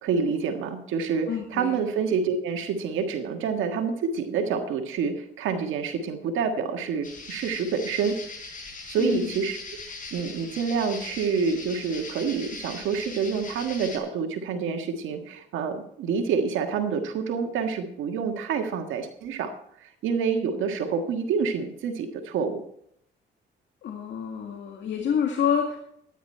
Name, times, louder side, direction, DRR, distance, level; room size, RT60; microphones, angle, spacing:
voice 1, 0.0-8.2 8.9-9.6 9.9-19.5 19.8-22.6, right 5 dB, 85° right, 5 dB, 1.6 m, -27 dB
voice 2, 1.3-1.8 9.0-9.3 23.8-25.8, left 8 dB, 70° left, 1 dB, 1.9 m, -27 dB
sound 1, 7.0-14.0, left 3 dB, 40° left, 4.0 m, -40 dB
13.5 x 10.0 x 4.4 m, 0.71 s
cardioid pair, 90°, 20 cm